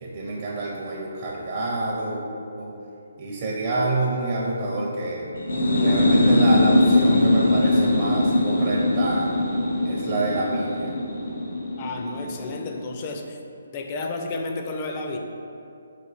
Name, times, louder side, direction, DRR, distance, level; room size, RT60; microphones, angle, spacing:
voice 1, 0.0-2.2 2.6-2.7 3.2-5.3 5.8-9.3 9.8-10.9, right 2 dB, 45° right, -4 dB, 0.5 m, -27 dB
sound 1, 5.4-12.9, left 1 dB, 80° left, 0.5 m, -21 dB
voice 2, 11.8-13.4 13.7-15.2, left 3 dB, 30° left, 3 dB, 0.4 m, -31 dB
4.2 x 2.6 x 4.0 m, 2.6 s
hypercardioid pair, 155°, 0 cm